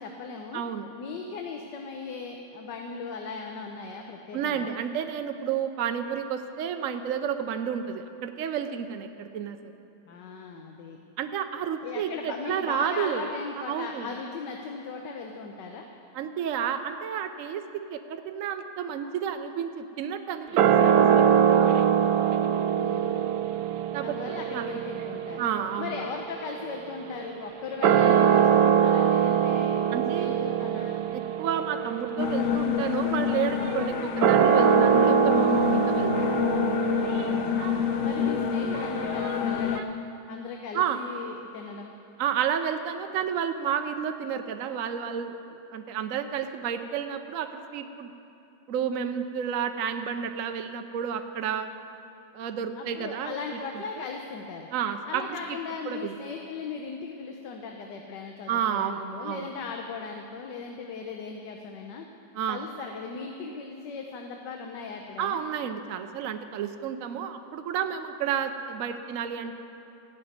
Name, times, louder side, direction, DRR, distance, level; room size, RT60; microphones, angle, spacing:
voice 1, 0.0-0.6 0.9-4.7 10.0-11.0 11.8-15.9 22.7-23.2 24.0-25.4 25.8-29.7 30.1-31.0 37.2-37.6 38.0-40.0 40.3-41.9 52.7-54.7 55.1-62.0 62.5-65.4, left 5 dB, 80° left, 3 dB, 1.5 m, -38 dB
voice 2, 0.5-0.9 4.3-9.6 11.2-13.3 13.7-14.1 16.1-21.7 23.9-24.7 25.4-26.0 29.9-30.3 31.4-36.1 38.0-38.2 40.7-41.0 42.2-48.1 48.7-51.7 52.3-53.3 54.7-55.2 55.9-56.1 58.5-59.5 62.3-62.6 65.2-69.5, right 8 dB, 65° right, 7 dB, 0.9 m, -31 dB
sound 1, 20.6-27.2 27.7-39.8, right 8 dB, 85° right, 1.3 m, -24 dB
sound 2, 32.2-39.8, left 9 dB, 65° left, 0.8 m, -28 dB
15.5 x 6.1 x 9.4 m, 2.8 s
omnidirectional pair, 1.8 m